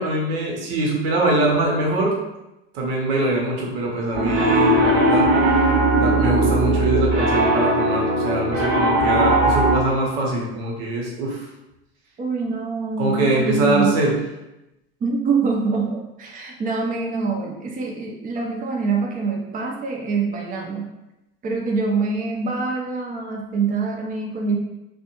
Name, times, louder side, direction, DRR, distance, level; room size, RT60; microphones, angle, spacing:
voice 1, 0.0-2.1 2.7-5.3 5.9-11.5 13.0-14.1, right 2 dB, 70° right, -2 dB, 0.9 m, -23 dB
Piano, 4.1-9.8, right 1 dB, 45° right, 0.9 m, -18 dB
voice 2, 12.2-14.0 15.0-20.9 21.4-24.6, right 4 dB, 25° right, 0 dB, 0.5 m, -25 dB
2.5 x 2.1 x 2.8 m, 0.95 s
hypercardioid pair, 80°, 31 cm